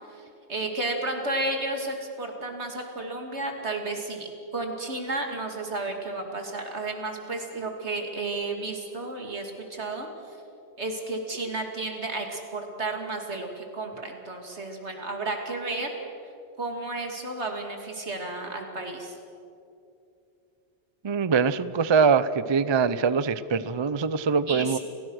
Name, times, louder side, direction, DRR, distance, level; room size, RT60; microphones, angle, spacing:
voice 1, 0.5-10.1 10.8-15.9 16.6-19.2 24.5-24.8, right 2 dB, 70° right, 3 dB, 2.9 m, -32 dB
voice 2, 21.0-24.8, right 5 dB, 35° right, 15 dB, 0.4 m, -23 dB
29.5 x 16.0 x 6.4 m, 2.6 s
omnidirectional pair, 1.2 m